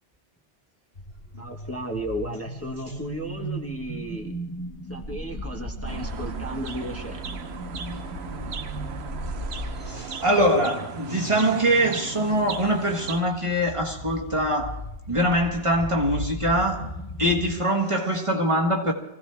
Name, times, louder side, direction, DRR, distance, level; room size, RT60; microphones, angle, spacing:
sound 1, 0.9-17.5, equal, 70° left, 1.9 m, -36 dB
voice 1, 1.4-4.3 4.9-7.3, equal, 15° left, 1.3 m, -34 dB
sound 2, 5.9-13.2, right 6 dB, 85° right, 1.1 m, -38 dB
voice 2, 9.8-14.8 15.1-16.9 17.2-18.9, equal, 30° right, 1.7 m, -23 dB
24.5 x 16.0 x 3.4 m
omnidirectional pair, 1.1 m